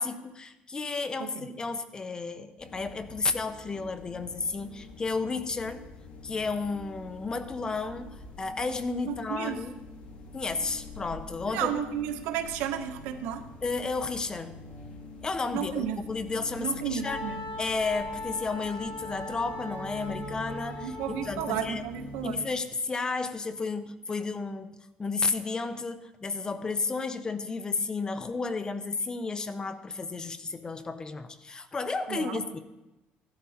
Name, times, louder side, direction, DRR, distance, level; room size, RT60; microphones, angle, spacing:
voice 1, 0.0-5.8 6.2-9.7 10.3-11.8 13.6-14.6 15.2-17.2 17.6-21.9 22.2-32.6, left 4 dB, 20° left, 9 dB, 0.9 m, -32 dB
sound 1, 2.6-22.3, left 2 dB, 40° left, 3.6 m, -46 dB
voice 2, 9.0-9.6 11.5-13.4 15.5-16.0 16.6-17.5 20.8-22.4 32.1-32.4, right 9 dB, 85° right, 6 dB, 1.3 m, -33 dB
Wind instrument woodwind instrument, 17.1-21.7, left 2 dB, 55° left, 4.0 m, -39 dB
15.0 x 12.0 x 4.3 m, 1.0 s
cardioid pair, 135°, 4 cm